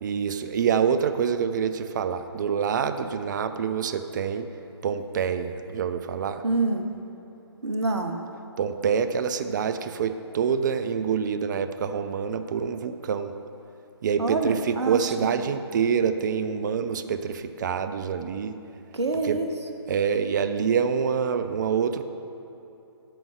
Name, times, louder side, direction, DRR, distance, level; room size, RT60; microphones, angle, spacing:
voice 1, 0.0-4.5 4.8-6.4 8.6-13.3 14.0-18.5 19.2-19.4 19.9-22.0, right 7 dB, 45° right, 10 dB, 0.5 m, -26 dB
voice 2, 6.4-6.8 7.6-8.2 14.2-15.3 18.9-19.5, right 2 dB, 80° right, 5 dB, 0.8 m, -26 dB
13.0 x 5.4 x 4.8 m, 2.9 s
figure-of-eight pair, 135°, 14 cm